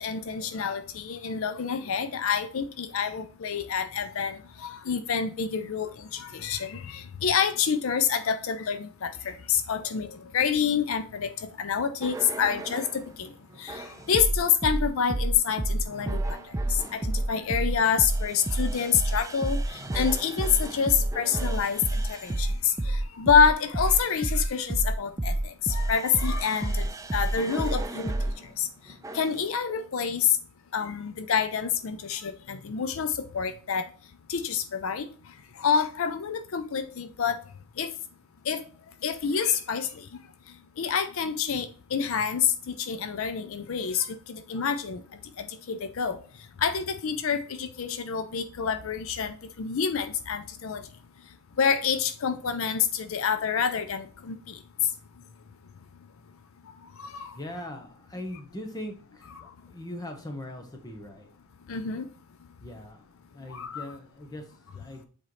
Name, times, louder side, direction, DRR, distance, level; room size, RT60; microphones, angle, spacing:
voice 1, 0.0-13.3 13.6-16.4 16.7-28.7 29.1-30.4 30.7-33.9 34.3-35.1 35.6-37.4 37.8-37.9 38.5-38.6 39.0-40.1 40.8-45.0 45.4-46.2 46.6-50.8 51.6-54.6 57.0-57.4 61.7-62.1 63.5-63.8, left 7 dB, 65° left, 0.5 m, -27 dB
sound 1, 12.0-13.0 13.7-28.4 29.0-29.4, right 1 dB, 15° right, 0.3 m, -29 dB
voice 2, 57.3-61.3 62.6-63.0 63.3-65.1, left 1 dB, 15° left, 1.0 m, -40 dB
7.5 x 4.4 x 3.1 m
head